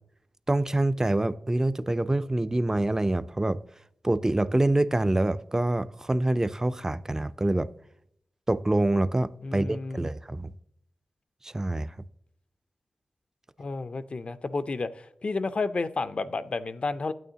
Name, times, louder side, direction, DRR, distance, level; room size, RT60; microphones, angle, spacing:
voice 1, 0.5-3.6 4.0-7.7 8.5-10.5 11.4-11.9, right 1 dB, 20° right, 0.4 m, -26 dB
voice 2, 9.4-10.0 13.6-14.9 15.2-17.1, left 3 dB, 55° left, 0.5 m, -31 dB
9.2 x 8.7 x 2.8 m
cardioid pair, 50°, 2 cm